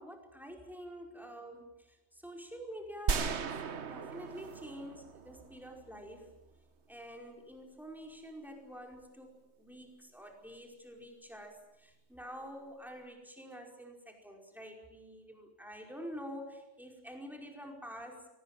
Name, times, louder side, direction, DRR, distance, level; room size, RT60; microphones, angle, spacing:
voice 1, 0.0-6.3 6.9-18.3, equal, ahead, 2 dB, 5.0 m, -48 dB
sound 1, 3.1-6.0, right 6 dB, 70° right, 1.4 m, -36 dB
24.0 x 19.5 x 9.2 m, 0.96 s
omnidirectional pair, 1.2 m